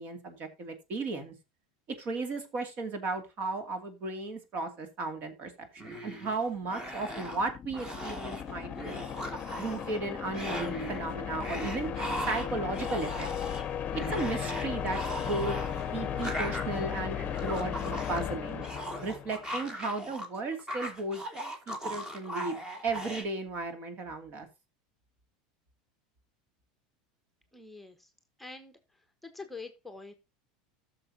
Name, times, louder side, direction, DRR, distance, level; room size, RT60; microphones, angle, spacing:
voice 1, 0.0-1.3 2.0-9.0 9.6-11.9 12.3-13.3 14.1-18.6 19.0-21.2 21.7-24.5, right 3 dB, 45° right, 7 dB, 2.5 m, -35 dB
sound 1, 5.8-6.4 6.7-7.5 7.7-8.4 8.7-10.0 10.3-11.0 11.4-20.3 20.5-23.2, equal, 15° right, 2.5 m, -38 dB
sound 2, 6.5-19.6, left 9 dB, 35° left, 0.8 m, -36 dB
voice 2, 27.5-28.1 28.4-30.1, left 3 dB, 5° left, 6 dB, 1.2 m, -46 dB
14.5 x 6.7 x 2.8 m, 0.25 s
hypercardioid pair, 100°, 4 cm